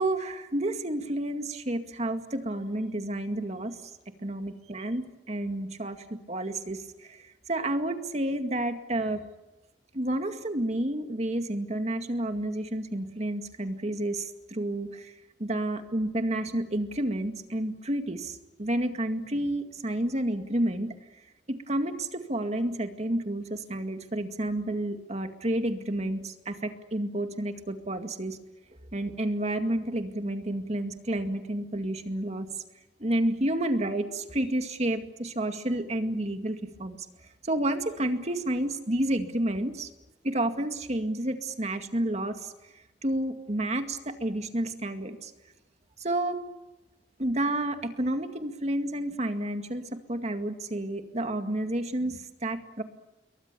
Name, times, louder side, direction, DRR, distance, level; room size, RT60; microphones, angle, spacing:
voice 1, 0.0-3.8 4.2-9.2 9.9-15.1 15.4-20.9 21.5-28.4 28.9-32.5 33.0-37.0 37.4-39.9 40.2-42.5 43.0-45.3 46.0-46.4 47.2-52.8, right 1 dB, 40° right, 7 dB, 2.1 m, -30 dB
28.5 x 22.5 x 7.0 m, 1.0 s
head